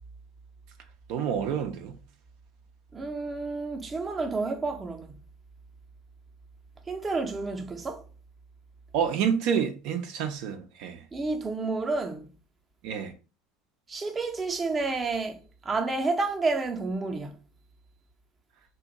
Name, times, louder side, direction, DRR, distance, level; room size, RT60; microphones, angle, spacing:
voice 1, 1.1-1.9 8.9-11.0 12.8-13.1, right 7 dB, 65° right, 0.5 m, -28 dB
voice 2, 2.9-5.2 6.9-8.0 11.1-12.3 13.9-17.4, right 3 dB, 20° right, 0.6 m, -30 dB
2.5 x 2.2 x 3.9 m
supercardioid pair, 105°, 0 cm